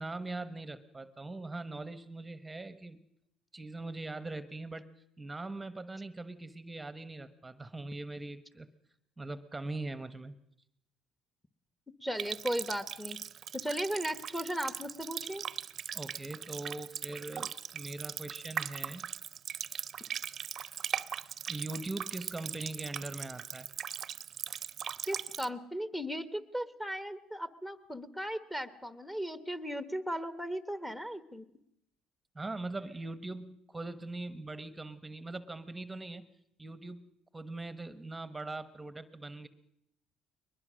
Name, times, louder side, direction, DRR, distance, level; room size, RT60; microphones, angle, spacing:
voice 1, 0.0-3.0 3.5-4.9 5.2-8.7 9.2-10.3 15.9-19.0 19.7-19.9 21.5-23.7 32.3-36.3 36.6-37.0 37.3-39.5, right 2 dB, 15° right, 14 dB, 1.1 m, -41 dB
voice 2, 12.0-13.2 13.5-15.4 25.1-31.5, equal, 5° left, 11 dB, 1.3 m, -36 dB
Water tap faucet, 12.2-25.5, right 8 dB, 50° right, 0.7 m, -40 dB
21.5 x 20.0 x 6.3 m, 0.77 s
supercardioid pair, 85°, 0 cm